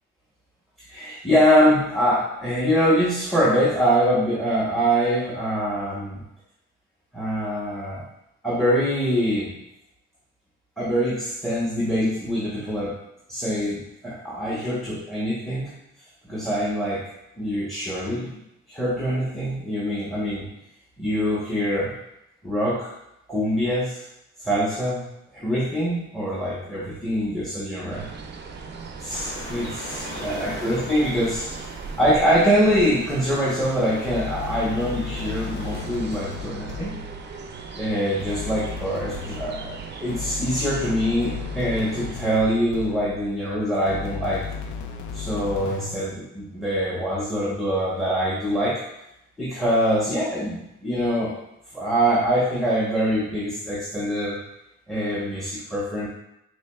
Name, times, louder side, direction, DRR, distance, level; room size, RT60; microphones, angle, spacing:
voice 1, 0.9-6.2 7.1-8.0 8.4-9.5 10.8-12.9 13.3-15.7 16.3-17.0 17.4-18.3 18.7-20.5 21.0-21.9 22.4-22.9 23.3-24.0 24.4-25.0 25.3-28.0 29.0-31.5 32.0-36.9 37.7-39.7 40.0-44.4 45.1-48.8 49.4-51.3 51.7-54.4 54.9-56.1, equal, ahead, -7 dB, 0.9 m, -24 dB
sound 1, 27.9-42.2, right 5 dB, 35° right, 0.5 m, -38 dB
sound 2, 29.1-35.8, left 1 dB, 40° left, 1.3 m, -39 dB
sound 3, 34.1-37.3 38.2-43.3 43.9-46.1, left 6 dB, 75° left, 0.5 m, -35 dB
4.3 x 3.1 x 2.3 m, 0.83 s
cardioid pair, 90°, 30 cm